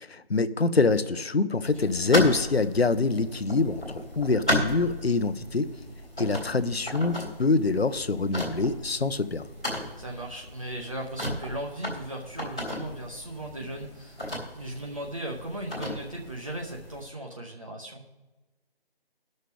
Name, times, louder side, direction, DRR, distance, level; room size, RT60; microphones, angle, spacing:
voice 1, 0.1-5.7 6.2-9.5, left 3 dB, 90° left, 13 dB, 0.7 m, -25 dB
sound 1, 1.7-17.0, left 1 dB, 5° left, 0.8 m, -35 dB
voice 2, 9.8-18.0, right 1 dB, 35° right, -1 dB, 0.8 m, -37 dB
18.0 x 6.5 x 3.4 m, 1.2 s
figure-of-eight pair, 160°, 30 cm